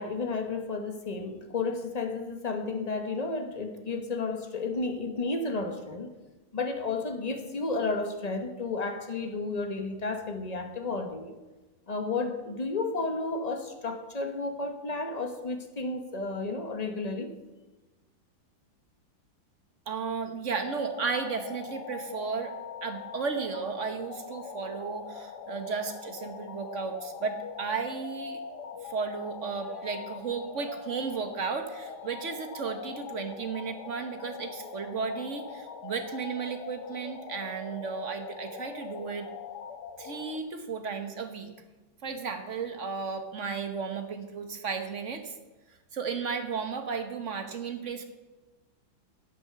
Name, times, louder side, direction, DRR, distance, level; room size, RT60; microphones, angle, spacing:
voice 1, 0.0-6.1 6.5-11.3 11.9-17.3, left 3 dB, 30° left, 0.9 m, -32 dB
voice 2, 19.9-22.5 22.8-28.4 28.8-39.3 40.0-41.5 42.0-45.3 45.9-48.0, right 5 dB, 45° right, 1.3 m, -34 dB
sound 1, 20.5-40.4, left 6 dB, 65° left, 1.4 m, -42 dB
11.5 x 7.9 x 6.9 m
omnidirectional pair, 2.2 m